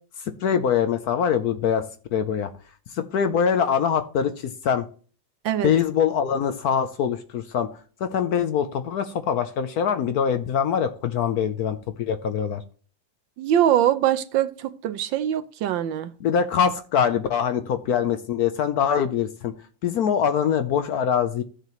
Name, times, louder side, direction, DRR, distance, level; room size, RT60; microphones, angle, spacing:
voice 1, 0.4-1.8 2.1-2.5 2.9-4.9 5.6-7.7 8.0-12.6 16.2-19.5 19.8-21.4, left 8 dB, 65° left, 1.0 m, -23 dB
voice 2, 13.4-16.1, right 11 dB, 80° right, 1.4 m, -23 dB
14.5 x 6.6 x 3.1 m
omnidirectional pair, 2.1 m